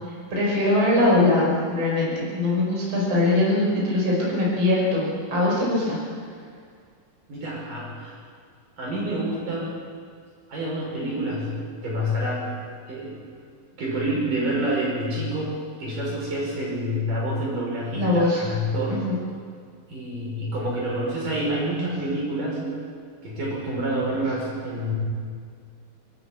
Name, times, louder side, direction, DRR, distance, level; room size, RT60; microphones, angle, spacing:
voice 1, 0.3-6.0 17.9-18.5 18.9-19.2, left 2 dB, 35° right, -4 dB, 5.9 m, -22 dB
voice 2, 7.3-8.1 8.8-9.7 10.5-11.6 11.8-12.5 12.9-13.2 13.7-15.5 15.8-19.1 19.9-22.6 23.2-25.0, equal, 65° right, -4 dB, 7.4 m, -27 dB
28.5 x 13.0 x 8.8 m, 2.2 s
omnidirectional pair, 4.1 m